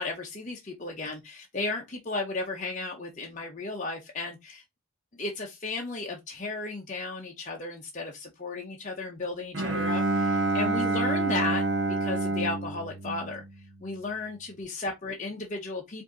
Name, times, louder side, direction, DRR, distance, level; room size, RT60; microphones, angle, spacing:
voice 1, 0.0-4.6 5.2-11.6 12.0-13.4 13.8-16.0, left 3 dB, 35° left, 0.7 m, -34 dB
Bowed string instrument, 9.5-13.9, right 2 dB, 55° right, 0.8 m, -28 dB
5.0 x 2.7 x 3.8 m
head